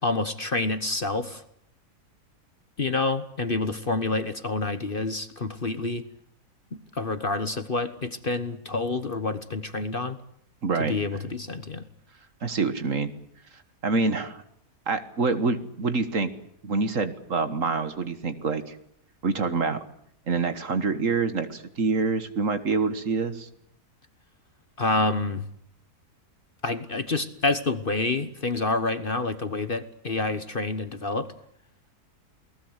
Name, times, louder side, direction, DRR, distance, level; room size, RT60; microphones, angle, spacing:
voice 1, 0.0-1.4 2.8-6.0 6.7-10.2 10.9-11.8 24.8-25.4 26.6-31.3, left 3 dB, 35° left, 11 dB, 1.2 m, -28 dB
voice 2, 10.6-11.2 12.4-13.1 13.8-14.4 14.9-16.3 16.6-18.8 19.2-19.8 20.3-23.5, right 4 dB, 55° right, 11 dB, 1.9 m, -26 dB
29.0 x 19.0 x 8.1 m, 0.71 s
omnidirectional pair, 1.7 m